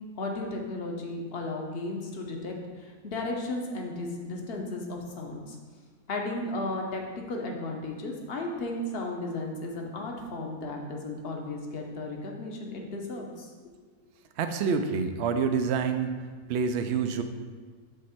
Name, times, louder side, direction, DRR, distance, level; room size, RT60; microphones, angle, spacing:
voice 1, 0.2-5.6 6.1-13.5, left 2 dB, 45° left, 1 dB, 1.0 m, -34 dB
voice 2, 14.4-16.1 16.5-17.2, right 5 dB, 65° right, 7 dB, 0.7 m, -27 dB
7.3 x 3.2 x 5.8 m, 1.5 s
omnidirectional pair, 1.6 m